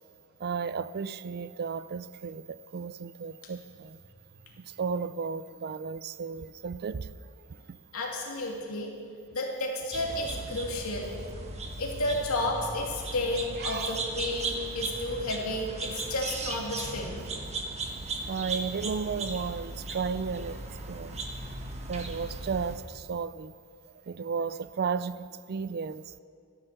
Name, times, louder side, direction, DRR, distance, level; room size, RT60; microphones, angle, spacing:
voice 1, 0.4-4.0 4.6-7.1 13.6-14.0 18.3-21.2 21.9-23.5 24.1-26.2, right 5 dB, 45° right, 0.4 m, -34 dB
voice 2, 7.9-8.9 9.3-11.1 11.8-17.2, left 1 dB, 80° left, 2.7 m, -32 dB
sound 1, 9.9-22.8, right 3 dB, 30° right, 1.3 m, -37 dB
13.5 x 12.0 x 6.7 m
head